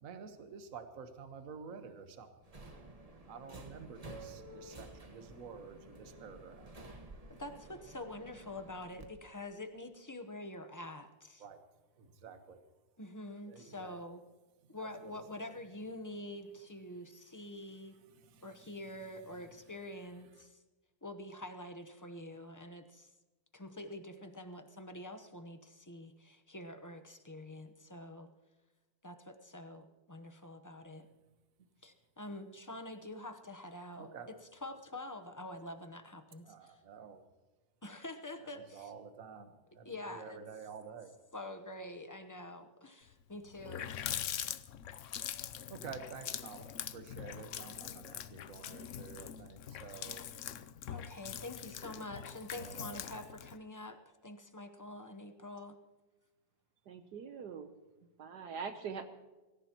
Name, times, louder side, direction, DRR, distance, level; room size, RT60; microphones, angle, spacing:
voice 1, 0.0-2.3 3.3-6.7 11.4-11.6 12.0-12.6 13.5-14.0 14.6-15.5 18.1-18.7 19.3-19.6 34.0-34.3 36.4-37.2 38.4-41.1 45.7-50.2 51.8-52.0 52.6-53.0, right 6 dB, 50° right, 7 dB, 1.5 m, -50 dB
Subway metro underground, 2.4-9.1, right 2 dB, 20° right, 1.2 m, -52 dB
voice 2, 7.3-11.5 13.0-14.2 14.7-18.0 18.4-20.6 21.0-23.1 23.5-28.3 29.0-31.1 31.8-36.8 37.8-38.9 39.8-40.4 41.3-44.3 50.9-55.8, left 1 dB, 25° left, 7 dB, 0.4 m, -46 dB
Water tap faucet, 43.1-43.2 43.5-53.6, left 10 dB, 70° left, 0.7 m, -43 dB
voice 3, 56.9-57.7 58.2-59.0, right 6 dB, 65° right, 7 dB, 1.4 m, -42 dB
25.0 x 15.5 x 3.0 m, 1.2 s
omnidirectional pair, 2.0 m